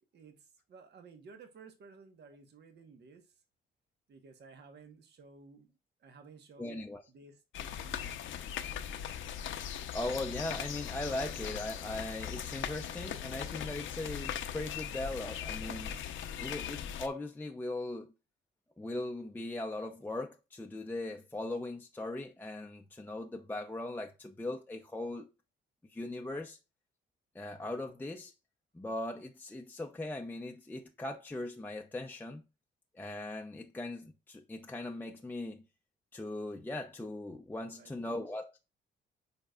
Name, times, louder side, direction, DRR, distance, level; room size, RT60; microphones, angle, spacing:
voice 1, 0.1-3.4 4.1-8.3 37.6-38.2, right 4 dB, 55° right, 1.3 m, -56 dB
voice 2, 6.6-7.0 9.9-16.0 16.4-18.1 18.8-25.3 25.9-26.6 27.3-28.3 28.7-32.4 33.0-35.6 36.1-38.6, left 2 dB, 10° left, 0.6 m, -39 dB
sound 1, 7.5-17.1, left 9 dB, 75° left, 0.8 m, -39 dB
8.6 x 5.3 x 2.4 m
cardioid pair, 90°, 20 cm